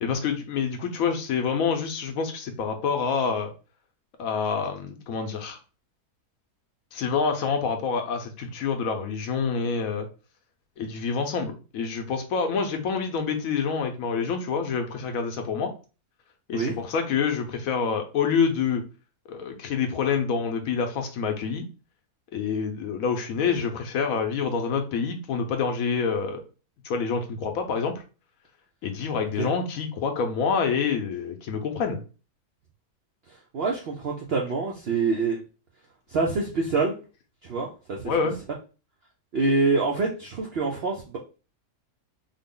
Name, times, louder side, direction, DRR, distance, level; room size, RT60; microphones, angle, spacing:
voice 1, 0.0-3.5 4.2-5.6 6.9-10.1 10.8-15.7 16.5-18.8 19.3-21.6 22.3-26.4 26.8-28.0 28.8-32.0 38.0-38.4, left 5 dB, 70° left, 4 dB, 1.0 m, -27 dB
voice 2, 33.3-35.4 36.1-37.0 37.4-38.1 39.3-41.2, right 3 dB, 70° right, -1 dB, 0.6 m, -26 dB
3.6 x 2.0 x 3.7 m, 0.34 s
omnidirectional pair, 1.7 m